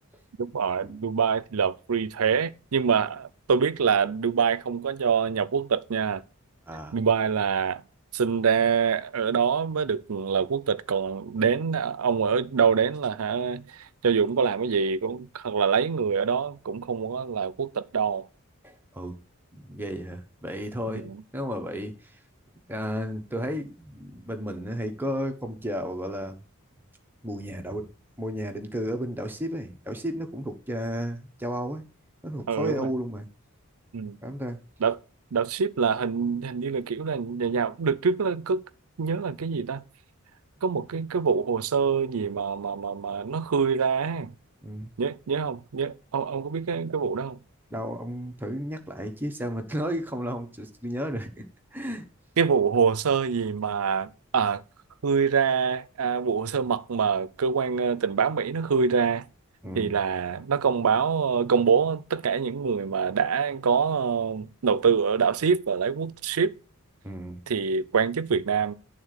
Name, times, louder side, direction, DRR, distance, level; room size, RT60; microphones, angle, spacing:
voice 1, 0.4-6.2 6.9-7.8 8.1-18.3 20.9-21.2 32.5-32.9 33.9-34.2 34.8-35.0 35.3-38.6 39.0-39.8 40.6-44.3 45.0-47.4 52.4-54.6 55.0-59.3 59.7-66.5 67.5-68.7, right 6 dB, 80° right, 0.5 m, -25 dB
voice 2, 18.6-19.2 19.5-22.2 22.7-26.4 27.2-27.9 28.2-31.9 32.2-33.3 34.2-34.6 44.6-44.9 47.7-51.4 51.7-52.1 59.6-59.9 67.0-67.4, equal, 10° right, 0.9 m, -33 dB
11.0 x 3.8 x 6.5 m
head